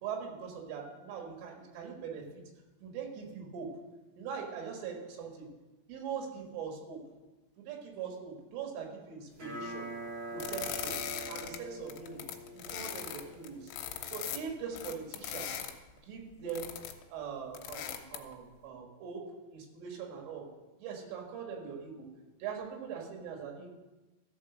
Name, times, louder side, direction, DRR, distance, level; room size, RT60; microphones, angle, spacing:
voice 1, 0.0-2.4 2.8-3.7 4.2-5.5 5.9-7.0 7.6-9.9 10.3-11.0 11.3-12.2 12.5-13.7 14.0-15.6 16.0-16.7 17.1-19.2 19.5-20.5 20.8-22.1 22.4-23.7, right 6 dB, 80° right, 1 dB, 4.1 m, -41 dB
sound 1, 9.3-14.4, right 2 dB, 40° right, 2.6 m, -44 dB
sound 2, 10.4-11.6 11.9-15.7 16.5-17.0 17.6-18.3, left 10 dB, 85° left, 3.2 m, -39 dB
14.0 x 4.9 x 6.1 m, 1.1 s
omnidirectional pair, 5.7 m